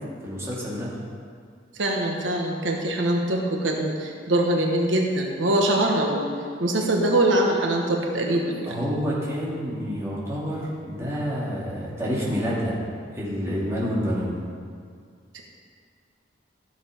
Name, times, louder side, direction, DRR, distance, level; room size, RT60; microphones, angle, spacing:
voice 1, 0.2-0.9 8.6-12.8 13.1-14.3, equal, 15° right, -7 dB, 2.6 m, -28 dB
voice 2, 1.7-6.3 6.6-8.8 15.3-15.4, right 1 dB, 90° right, 1 dB, 1.3 m, -23 dB
14.5 x 6.8 x 5.2 m, 2.1 s
head